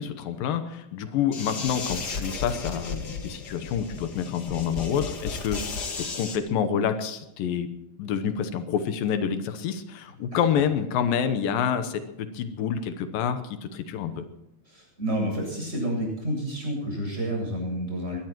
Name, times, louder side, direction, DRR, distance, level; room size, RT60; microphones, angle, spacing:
voice 1, 0.0-5.6 6.0-7.7 8.0-14.3, left 8 dB, 85° left, 9 dB, 2.7 m, -28 dB
sound 1, 1.3-6.4, left 4 dB, 40° left, 1.7 m, -34 dB
voice 2, 14.7-18.2, equal, 15° right, -1 dB, 8.0 m, -29 dB
22.5 x 19.5 x 3.1 m, 0.90 s
omnidirectional pair, 4.0 m